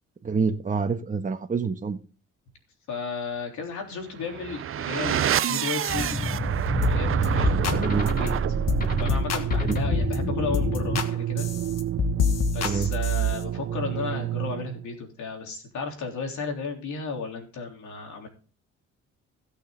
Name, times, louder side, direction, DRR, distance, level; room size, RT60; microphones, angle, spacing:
voice 1, 0.2-2.0 7.8-8.1 9.6-9.8 12.6-12.9, right 5 dB, 25° right, 1.2 m, -27 dB
voice 2, 2.9-6.3 6.9-8.3 9.0-11.5 12.5-18.3, left 5 dB, 75° left, 3.6 m, -34 dB
sound 1, 4.2-14.9, right 11 dB, 45° right, 0.6 m, -28 dB
sound 2, 5.9-11.0, left 2 dB, 30° left, 2.4 m, -29 dB
sound 3, 6.8-7.0 7.2-7.8 8.1-8.3 8.7-8.8 9.1-10.2 10.5-11.1 11.4-13.4, left 6 dB, 60° left, 1.4 m, -27 dB
16.5 x 6.5 x 3.9 m
cardioid pair, 90°, 30 cm